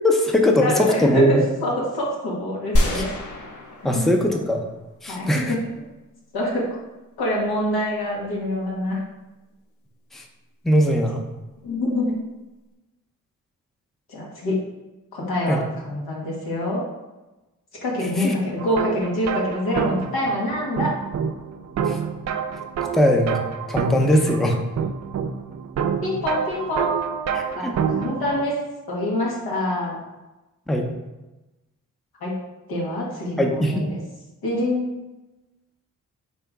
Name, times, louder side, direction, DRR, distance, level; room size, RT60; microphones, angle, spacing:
voice 1, 0.0-1.4 2.9-3.0 3.8-4.6 5.0-5.5 10.1-10.2 10.6-11.2 15.5-15.6 18.2-18.3 21.9-22.0 22.9-23.4 23.7-24.6 27.3-27.7 30.7-30.9 33.4-33.9, equal, ahead, 2 dB, 0.6 m, -20 dB
voice 2, 0.6-3.1 5.1-5.6 6.3-6.8 7.2-9.0 11.6-12.2 14.1-14.6 15.1-16.8 17.8-20.9 26.0-28.6 28.9-30.0 32.2-32.4 32.7-34.0 34.4-34.9, left 1 dB, 90° left, -4 dB, 1.1 m, -26 dB
sound 1, 2.8-4.7 5.0-5.1, equal, 55° left, 0.7 m, -25 dB
sound 2, 18.6-28.4, right 7 dB, 50° right, 0.4 m, -28 dB
3.6 x 2.8 x 3.5 m, 1.1 s
supercardioid pair, 45°, 36 cm